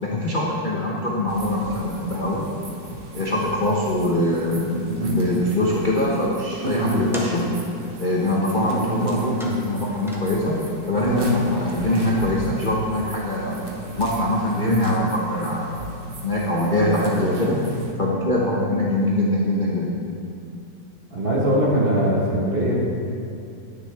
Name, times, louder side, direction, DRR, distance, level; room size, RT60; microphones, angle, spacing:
voice 1, 0.0-2.4 3.1-7.4 8.0-9.4 9.7-10.6 10.9-13.6 14.0-15.9 16.2-17.6 18.0-20.0, left 1 dB, 45° left, -4 dB, 0.6 m, -23 dB
sound 1, 1.3-17.9, right 1 dB, 55° right, 0.6 m, -31 dB
sound 2, 6.9-13.6, equal, 5° right, 0.3 m, -42 dB
voice 2, 21.1-22.7, right 1 dB, 35° right, -5 dB, 1.1 m, -21 dB
9.7 x 9.5 x 3.3 m, 2.6 s
omnidirectional pair, 2.3 m